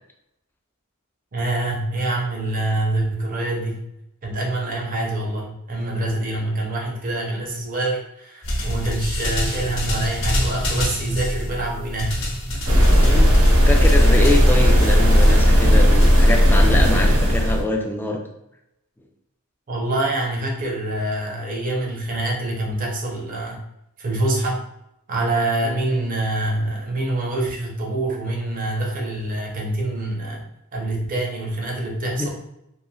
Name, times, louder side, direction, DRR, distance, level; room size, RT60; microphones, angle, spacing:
voice 1, 1.3-3.8 4.2-12.2 12.5-12.8 19.7-23.6 24.0-24.6 25.1-30.4 30.7-32.3, right 2 dB, 40° right, -1 dB, 0.6 m, -25 dB
sound 1, 8.4-16.9, equal, 65° left, 0.9 m, -27 dB
sound 2, 12.7-17.6, equal, 90° right, 0.6 m, -14 dB
voice 2, 13.0-13.3 13.6-18.2 25.6-25.8 32.1-32.3, left 2 dB, 10° left, 2 dB, 0.3 m, -24 dB
3.0 x 2.4 x 2.2 m, 0.84 s
head